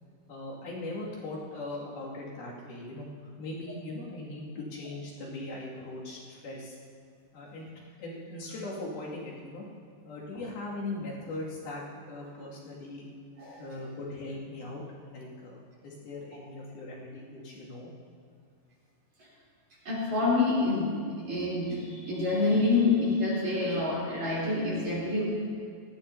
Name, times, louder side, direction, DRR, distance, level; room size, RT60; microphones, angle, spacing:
voice 1, 0.3-3.1 3.4-6.8 7.3-7.7 8.0-9.7 10.0-13.1 13.6-17.9, left 2 dB, 80° left, -5 dB, 4.3 m, -40 dB
voice 2, 19.8-21.0 21.3-25.3, left 3 dB, 50° right, -7 dB, 4.8 m, -27 dB
18.0 x 15.0 x 2.8 m, 2.2 s
omnidirectional pair, 4.3 m